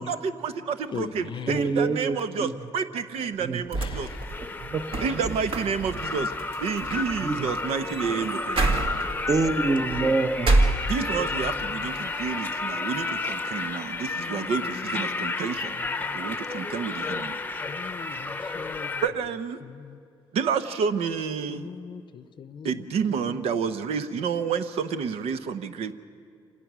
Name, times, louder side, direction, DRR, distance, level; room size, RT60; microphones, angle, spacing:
voice 1, 0.0-4.1 5.0-6.3 6.6-8.7 10.9-15.8 16.1-17.4 19.0-19.6 20.3-21.7 22.6-25.9, right 6 dB, 75° right, 11 dB, 0.9 m, -29 dB
voice 2, 0.9-1.9 3.8-4.3 8.1-8.3 10.9-12.4 12.7-12.9 14.2-16.3 17.6-19.1 19.6-20.0 21.5-23.5, left 7 dB, 50° left, 14 dB, 0.7 m, -41 dB
voice 3, 1.5-2.5 3.4-3.6 4.6-4.8 5.1-5.2 7.2-7.5 9.3-10.7, right 3 dB, 35° right, 8 dB, 1.1 m, -26 dB
sound 1, 3.4-11.4 11.8-12.6, right 2 dB, 60° right, 1.8 m, -29 dB
sound 2, 3.9-19.1, left 3 dB, 15° left, 0.8 m, -32 dB
26.0 x 18.5 x 6.2 m, 2.3 s
cardioid pair, 100°, 10 cm